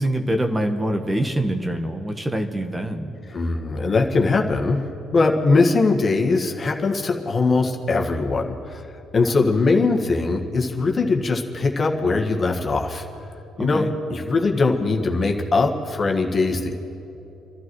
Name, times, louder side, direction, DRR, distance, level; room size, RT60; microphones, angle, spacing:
voice 1, 0.0-3.1 13.6-13.9, right 1 dB, 15° right, 5 dB, 1.3 m, -24 dB
voice 2, 3.3-4.8 5.1-13.0 13.6-16.8, left 3 dB, 40° left, 2 dB, 1.6 m, -21 dB
29.0 x 12.5 x 3.2 m, 3.0 s
hypercardioid pair, 55°, 0 cm